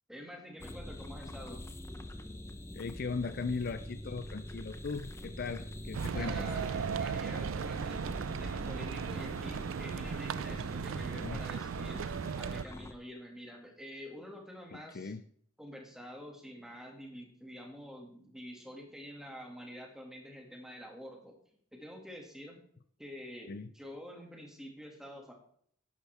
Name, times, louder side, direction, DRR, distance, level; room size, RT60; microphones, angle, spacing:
voice 1, 0.1-1.6 6.1-12.0 12.4-15.1 15.6-21.4 21.7-22.6 23.0-25.3, equal, 5° right, 1 dB, 2.1 m, -47 dB
sound 1, 0.6-12.9, left 1 dB, 15° left, 0.7 m, -44 dB
voice 2, 2.7-6.5 10.9-11.4 14.7-15.2 23.5-23.7, left 4 dB, 50° left, 12 dB, 0.4 m, -38 dB
sound 2, 5.9-12.6, right 6 dB, 85° right, 0.4 m, -36 dB
11.0 x 10.5 x 3.5 m, 0.62 s
head